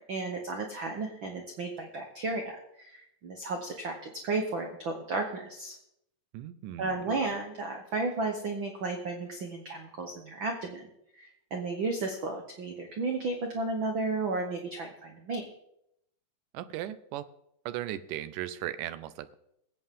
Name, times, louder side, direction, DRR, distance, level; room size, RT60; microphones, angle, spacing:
voice 1, 0.0-5.7 6.8-10.8 11.1-15.4, right 3 dB, 65° right, 3 dB, 1.2 m, -33 dB
voice 2, 6.3-7.0 16.5-17.3 17.7-19.4, right 13 dB, 80° right, 14 dB, 2.2 m, -37 dB
21.5 x 8.4 x 3.7 m, 0.79 s
omnidirectional pair, 3.8 m